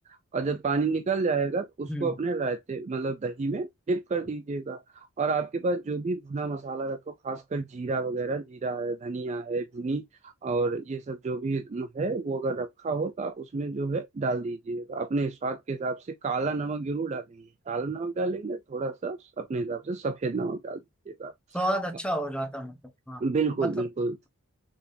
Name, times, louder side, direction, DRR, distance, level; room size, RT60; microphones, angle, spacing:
voice 1, 0.3-4.8 5.2-21.3 23.2-24.2, right 3 dB, 30° right, 0.3 m, -30 dB
voice 2, 21.5-22.8 23.1-23.2 23.6-23.7, right 1 dB, 5° left, 0.8 m, -30 dB
3.9 x 3.4 x 2.6 m
head